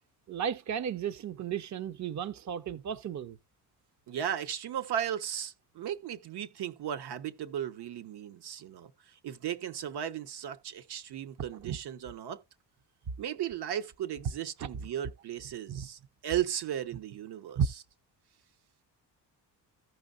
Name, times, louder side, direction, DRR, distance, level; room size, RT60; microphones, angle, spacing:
voice 1, 0.3-3.4 11.6-11.8 14.6-14.7 15.7-15.9 17.6-17.7, right 8 dB, 45° right, 0.7 m, -33 dB
voice 2, 4.1-12.4 13.2-17.6, right 10 dB, 75° right, 1.2 m, -36 dB
15.5 x 5.5 x 2.4 m
cardioid pair, 95°, 40 cm